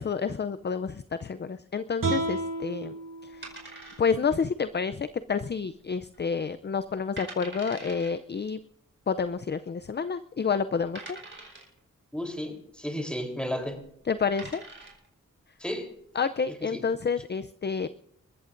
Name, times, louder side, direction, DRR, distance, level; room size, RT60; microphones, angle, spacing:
voice 1, 0.0-3.0 3.2-3.5 4.0-8.6 9.1-11.2 14.1-14.6 16.1-17.9, left 5 dB, 35° left, 12 dB, 0.5 m, -29 dB
sound 1, 2.0-5.2, right 2 dB, 85° right, 3.8 m, -34 dB
sound 2, 3.4-4.4 4.6-4.7 5.4-5.8 6.1-6.2 6.8-6.9 7.2-8.1 9.2-9.3 10.0-10.1 11.0-11.8 13.6-13.8 14.2-15.1, right 2 dB, 35° right, 4.5 m, -43 dB
voice 2, 12.1-13.8 15.6-15.9 16.6-16.8, equal, 5° left, 2 dB, 3.6 m, -33 dB
27.5 x 14.0 x 2.6 m, 0.73 s
wide cardioid pair, 75°, 32 cm